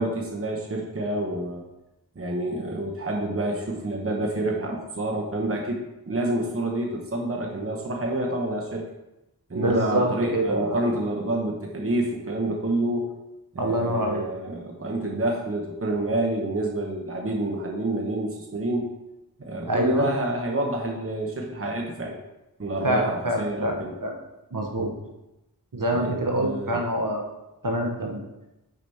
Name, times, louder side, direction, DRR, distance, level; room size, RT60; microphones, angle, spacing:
voice 1, 0.0-1.6 2.2-8.8 9.5-13.1 13.5-18.9 19.4-22.2 22.6-23.9 25.9-26.8, right 1 dB, 35° right, 0 dB, 1.0 m, -28 dB
voice 2, 9.5-10.8 13.6-14.2 19.7-20.1 22.8-24.1 24.5-24.9 25.7-27.3 27.6-28.2, right 1 dB, 60° right, 1 dB, 1.2 m, -25 dB
6.4 x 5.2 x 4.2 m, 0.94 s
wide cardioid pair, 60°, 37 cm